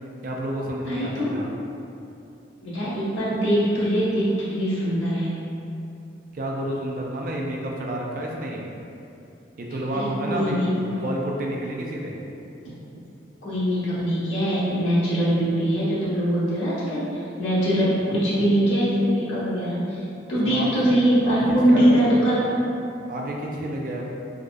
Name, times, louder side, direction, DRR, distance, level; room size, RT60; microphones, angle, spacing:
voice 1, 0.2-1.5 6.3-8.7 9.6-12.1 20.4-20.7 21.2-22.2 23.1-24.1, right 1 dB, 45° right, -1 dB, 0.4 m, -30 dB
voice 2, 0.9-1.3 2.6-5.4 9.9-11.0 12.9-13.0 13.4-22.4, equal, 85° left, -10 dB, 1.1 m, -22 dB
3.7 x 2.3 x 2.4 m, 2.7 s
head